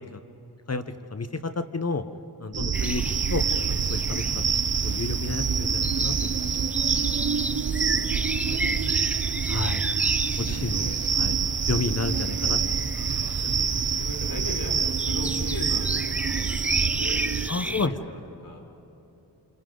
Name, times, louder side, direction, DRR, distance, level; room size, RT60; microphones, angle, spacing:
voice 1, 1.1-2.0 2.4-3.0 3.3-3.4 3.7-4.2 4.8-6.5 7.0-7.1 9.5-9.8 10.4-10.9 11.2-11.4 11.7-12.8 13.2-13.3 17.5-17.9, left 4 dB, 35° left, 9 dB, 1.0 m, -30 dB
sound 1, 2.5-17.5, right 6 dB, 40° right, 0.7 m, -26 dB
voice 2, 2.6-3.2 7.6-9.1 10.3-11.0 11.4-11.7 12.8-18.1 18.4-18.6, left 1 dB, 55° left, 0 dB, 5.3 m, -40 dB
sound 2, 2.7-17.9, right 1 dB, 5° right, 0.4 m, -35 dB
29.0 x 29.0 x 3.9 m, 2.9 s
cardioid pair, 60°, 41 cm